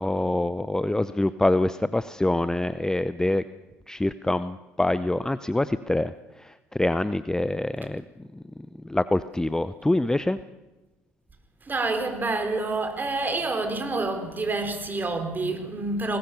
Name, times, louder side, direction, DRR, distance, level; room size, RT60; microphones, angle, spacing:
voice 1, 0.0-3.4 3.9-6.1 6.4-8.0 8.3-8.4 8.8-10.4, left 1 dB, 10° left, 0.8 m, -25 dB
voice 2, 11.6-16.2, right 3 dB, 25° right, 4.2 m, -28 dB
21.0 x 19.0 x 6.9 m
hypercardioid pair, 55°, 7 cm